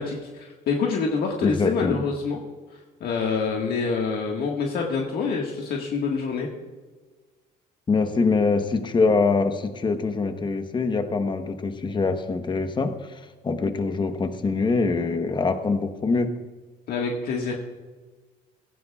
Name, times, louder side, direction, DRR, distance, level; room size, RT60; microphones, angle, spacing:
voice 1, 0.0-2.4 3.0-6.5 16.9-17.5, left 5 dB, 65° left, 0 dB, 1.6 m, -26 dB
voice 2, 1.4-2.0 7.9-16.3, left 4 dB, 25° left, 7 dB, 1.1 m, -24 dB
17.0 x 15.5 x 2.4 m, 1.3 s
cardioid pair, 110°, 17 cm